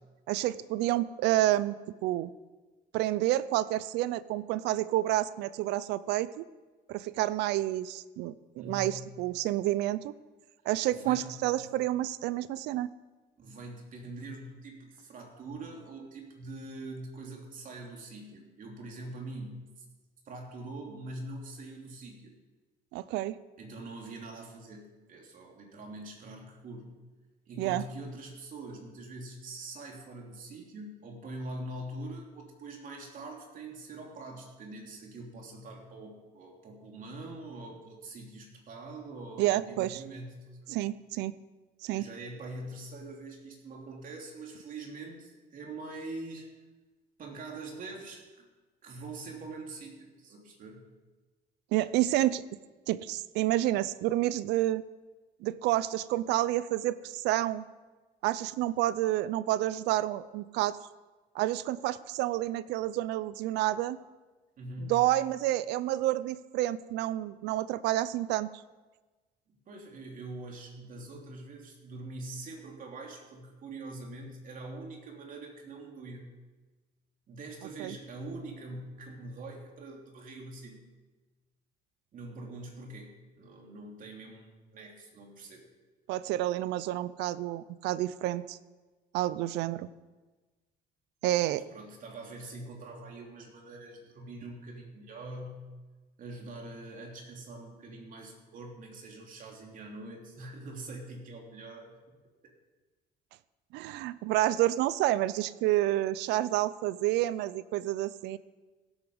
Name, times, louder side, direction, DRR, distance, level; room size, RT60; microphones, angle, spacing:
voice 1, 0.3-1.7 2.0-2.3 2.9-6.5 6.9-10.1 10.7-12.9 22.9-23.4 27.6-27.8 39.4-40.0 40.7-41.3 41.8-42.0 51.7-52.4 52.9-54.8 55.4-57.6 58.2-60.8 61.3-64.0 64.8-68.5 77.8-78.0 86.1-88.6 89.1-89.9 91.2-91.7 103.7-108.4, right 15 dB, 90° right, 17 dB, 0.5 m, -29 dB
voice 2, 8.6-9.1 10.9-11.8 13.4-19.8 20.2-22.3 23.6-27.0 27.5-40.8 41.9-46.5 47.2-48.5 48.8-50.9 64.6-65.1 69.5-76.3 77.3-80.8 82.1-85.7 91.5-95.7 96.2-102.2, right 2 dB, 55° right, 1 dB, 2.9 m, -44 dB
17.0 x 8.1 x 5.4 m, 1.2 s
cardioid pair, 110°, 17 cm